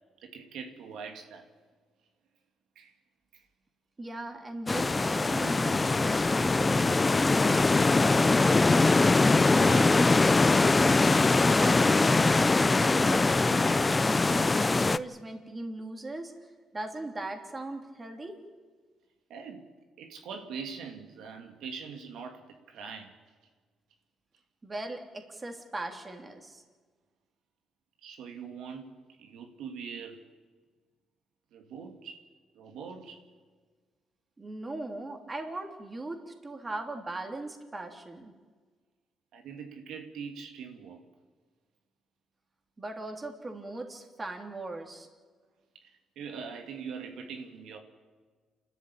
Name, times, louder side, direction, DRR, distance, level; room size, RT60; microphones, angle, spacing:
voice 1, 0.2-1.5 2.8-2.9 3.3-3.4 9.6-10.3 11.2-11.4 19.3-19.7 20.0-23.2 28.0-30.2 31.5-32.3 32.5-33.2 39.3-41.0 45.8-47.8, right 6 dB, 80° right, 4 dB, 2.5 m, -43 dB
voice 2, 4.0-8.6 11.5-18.4 24.6-26.6 34.4-38.3 42.8-45.1, right 2 dB, 25° right, 4 dB, 3.1 m, -39 dB
sound 1, 4.7-15.0, left 3 dB, 25° left, 0.6 m, -22 dB
28.5 x 13.0 x 8.7 m, 1.5 s
cardioid pair, 90°, 0 cm